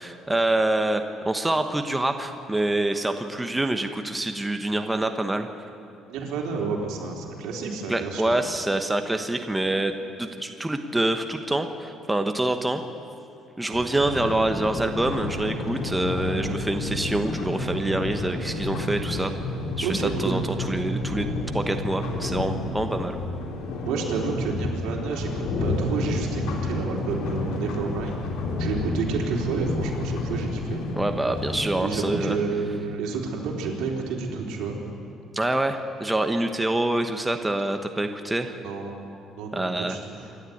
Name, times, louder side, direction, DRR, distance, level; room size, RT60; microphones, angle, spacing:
voice 1, 0.0-5.5 7.9-9.9 10.2-12.8 13.6-19.3 19.8-20.4 20.7-23.2 31.0-32.4 35.3-38.6 39.5-40.0, right 1 dB, 10° right, 6 dB, 1.1 m, -26 dB
voice 2, 6.1-8.3 17.5-17.6 19.8-20.4 23.8-28.2 28.6-30.8 31.8-34.8 38.6-38.9 39.4-40.3, right 4 dB, 80° right, 0 dB, 3.7 m, -30 dB
sound 1, 13.7-31.7, left 2 dB, 80° left, 3.3 m, -30 dB
26.5 x 11.5 x 9.3 m, 2.6 s
cardioid pair, 125°, 0 cm